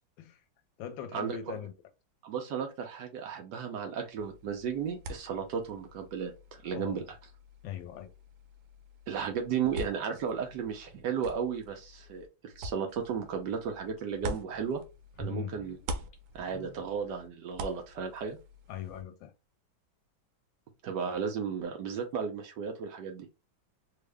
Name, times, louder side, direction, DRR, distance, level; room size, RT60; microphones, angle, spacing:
voice 1, 0.8-1.7 6.7-7.1 7.6-8.1 15.2-15.5 18.7-19.3, left 10 dB, 80° left, 1.4 m, -40 dB
voice 2, 2.2-7.0 9.1-12.3 12.6-14.8 15.2-15.8 16.3-18.4 20.8-23.3, right 7 dB, 70° right, 1.2 m, -34 dB
sound 1, 4.1-15.3 15.6-19.0, right 1 dB, 90° right, 1.4 m, -45 dB
sound 2, 12.9-13.0 13.5-13.6 13.9-14.7 15.1-17.4 17.6-17.7, equal, 35° left, 1.1 m, -46 dB
3.6 x 2.0 x 3.3 m
omnidirectional pair, 2.1 m